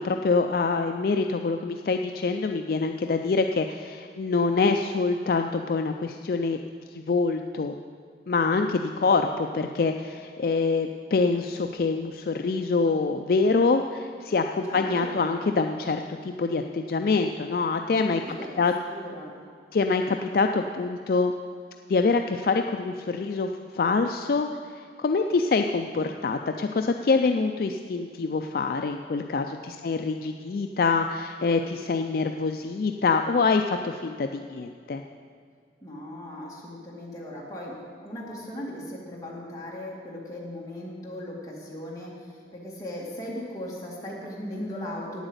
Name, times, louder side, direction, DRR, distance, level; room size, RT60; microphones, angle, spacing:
voice 1, 0.0-6.6 6.9-7.7 8.3-18.2 18.6-18.7 19.7-21.3 21.9-24.5 25.0-35.0, left 4 dB, 50° left, 5 dB, 0.4 m, -25 dB
voice 2, 14.6-15.3 18.2-19.3 35.8-37.8 38.0-45.2, left 1 dB, 20° left, -5 dB, 2.1 m, -38 dB
8.9 x 8.1 x 7.9 m, 2.1 s
head